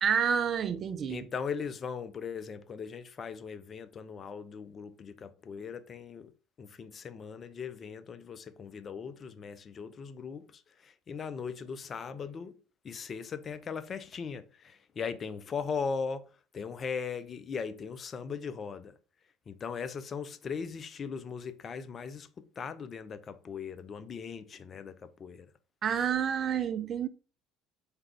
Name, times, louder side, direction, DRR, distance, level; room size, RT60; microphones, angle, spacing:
voice 1, 0.0-1.2 25.8-27.1, right 7 dB, 40° right, 0.3 m, -29 dB
voice 2, 1.1-6.3 6.6-12.6 12.8-19.0 19.5-25.5, left 6 dB, 35° left, 0.4 m, -39 dB
3.2 x 2.4 x 3.0 m
figure-of-eight pair, 60°, 0 cm